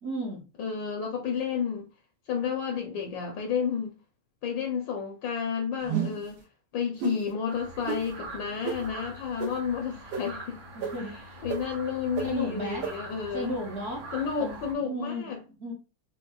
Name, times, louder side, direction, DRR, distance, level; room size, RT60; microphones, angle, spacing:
voice 1, 0.0-0.4 8.5-8.6 10.7-11.4 12.2-12.9 13.3-14.1 14.4-15.7, equal, 65° right, 0.6 m, -35 dB
voice 2, 0.6-1.9 2.3-4.0 4.4-6.4 6.7-10.6 11.4-13.5 14.1-15.4, left 7 dB, 75° left, 1.2 m, -31 dB
sound 1, 5.8-6.3 7.0-7.2 7.9-8.0 8.6-8.8 9.4-9.5 10.1-10.2 10.8-10.9 11.5-11.6 12.2-12.3 12.8-12.9, right 7 dB, 85° right, 1.7 m, -30 dB
sound 2, 7.5-14.7, right 1 dB, 50° right, 1.0 m, -44 dB
5.2 x 2.1 x 2.3 m
omnidirectional pair, 2.2 m